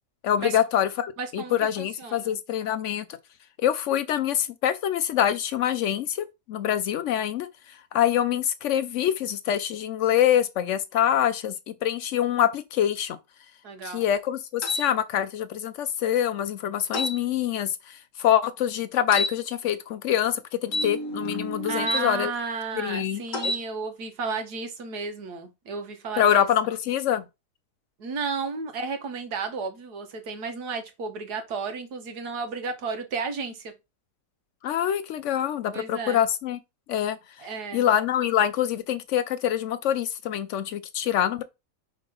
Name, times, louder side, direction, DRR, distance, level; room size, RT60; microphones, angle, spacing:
voice 1, 0.2-3.1 3.6-13.2 13.8-22.3 22.8-23.5 26.2-27.2 34.6-36.6 36.9-37.5 37.7-41.4, left 10 dB, 80° left, 0.6 m, -25 dB
voice 2, 1.2-2.3 13.6-14.1 21.6-26.5 28.0-33.7 35.7-36.2 37.4-37.8, right 4 dB, 70° right, 1.6 m, -33 dB
sound 1, 14.6-14.9 16.9-17.2 19.1-19.3 20.7-22.0 23.3-23.6, left 1 dB, 55° left, 1.3 m, -29 dB
5.3 x 3.8 x 5.2 m
omnidirectional pair, 1.8 m